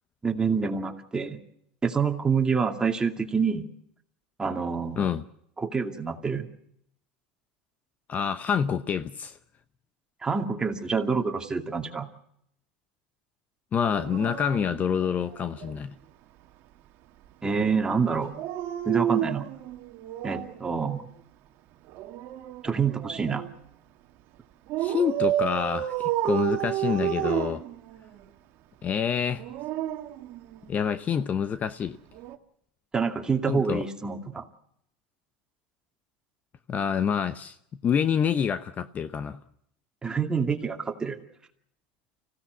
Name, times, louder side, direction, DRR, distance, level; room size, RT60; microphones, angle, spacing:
voice 1, 0.2-1.4 1.8-3.7 4.4-5.1 5.6-6.5 10.2-12.1 17.4-18.3 18.9-19.5 20.2-21.1 22.6-23.4 32.9-34.5 40.0-41.2, right 5 dB, 15° right, 2.4 m, -27 dB
voice 2, 8.1-9.4 13.7-15.9 24.8-27.6 28.8-29.4 30.7-32.0 33.5-33.8 36.7-37.6 37.8-39.4, left 7 dB, 35° left, 0.8 m, -27 dB
Dog, 13.9-15.8 18.2-20.6 21.9-23.6 24.7-28.3 29.2-30.9 32.1-32.4, right 12 dB, 55° right, 1.6 m, -31 dB
25.5 x 16.5 x 8.1 m
supercardioid pair, 105°, 5 cm